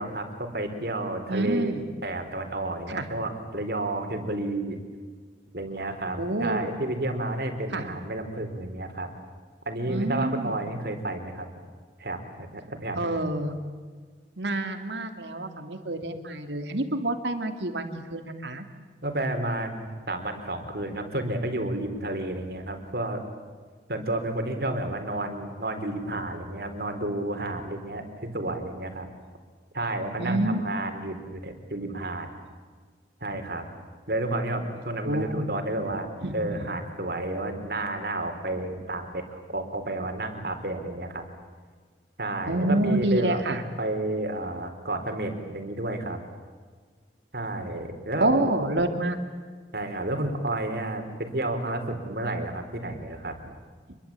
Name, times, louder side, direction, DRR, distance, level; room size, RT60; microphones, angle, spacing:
voice 1, 0.0-1.7 2.0-4.8 5.5-9.1 9.7-11.5 12.0-13.1 19.0-23.2 23.9-29.1 29.7-32.3 33.2-33.7 34.1-36.1 36.3-41.3 42.2-43.4 43.8-46.2 47.3-48.3 49.7-53.4, right 1 dB, 60° right, 6 dB, 4.1 m, -31 dB
voice 2, 1.3-1.8 2.9-3.1 6.2-6.7 7.7-7.8 9.9-10.5 13.0-13.6 14.4-18.6 30.2-30.9 35.0-35.5 36.2-36.7 42.4-43.6 48.2-49.2, right 1 dB, 85° right, 7 dB, 2.9 m, -28 dB
28.0 x 23.0 x 8.7 m, 1.5 s
head